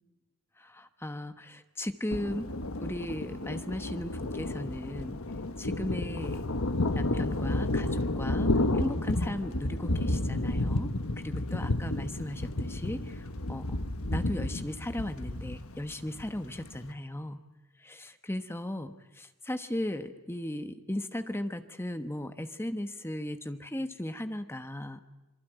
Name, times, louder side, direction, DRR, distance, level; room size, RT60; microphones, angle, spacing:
voice 1, 0.6-2.5 2.8-5.2 5.6-6.4 6.9-13.8 14.1-17.4 17.8-25.0, left 1 dB, 10° left, 9 dB, 1.1 m, -37 dB
Thunder, 2.1-16.9, left 2 dB, 75° left, 1.5 m, -31 dB
27.0 x 23.0 x 9.1 m, 1.0 s
head